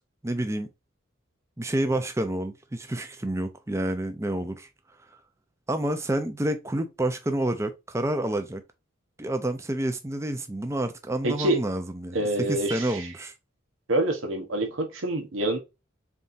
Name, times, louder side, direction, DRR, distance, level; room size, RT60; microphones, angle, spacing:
voice 1, 0.2-0.7 1.6-4.7 5.7-8.6 9.2-12.2 12.5-13.3, right 1 dB, 15° right, 0.5 m, -29 dB
voice 2, 11.2-11.6 12.1-13.1 13.9-15.6, right 1 dB, 85° right, 1.0 m, -26 dB
4.1 x 3.5 x 2.5 m
head